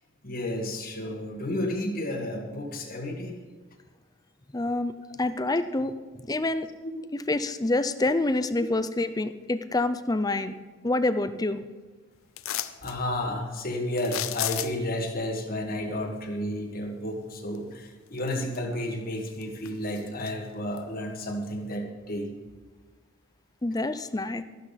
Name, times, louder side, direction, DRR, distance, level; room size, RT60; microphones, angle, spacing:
voice 1, 0.2-3.4 6.9-7.0 12.8-22.3, left 1 dB, 45° left, 3 dB, 1.8 m, -32 dB
voice 2, 4.5-5.9 6.2-6.7 7.1-10.5 10.8-11.6 23.6-24.4, left 2 dB, 20° left, 12 dB, 0.5 m, -27 dB
sound 1, 12.4-13.0 14.0-15.0 17.5-17.6 18.1-18.8 19.2-20.3 20.8-20.9, left 12 dB, 80° left, 0.6 m, -33 dB
13.5 x 12.0 x 4.1 m, 1.3 s
head